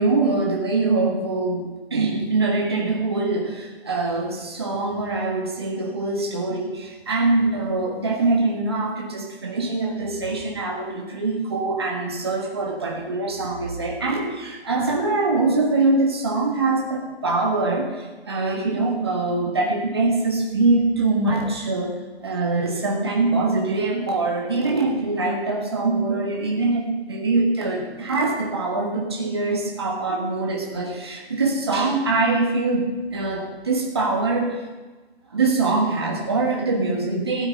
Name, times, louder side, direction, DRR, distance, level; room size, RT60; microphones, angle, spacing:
voice 1, 0.0-21.9 22.2-34.6 35.3-37.5, right 3 dB, 25° right, -1 dB, 1.6 m, -23 dB
19.5 x 9.0 x 3.8 m, 1.2 s
figure-of-eight pair, 175°, 32 cm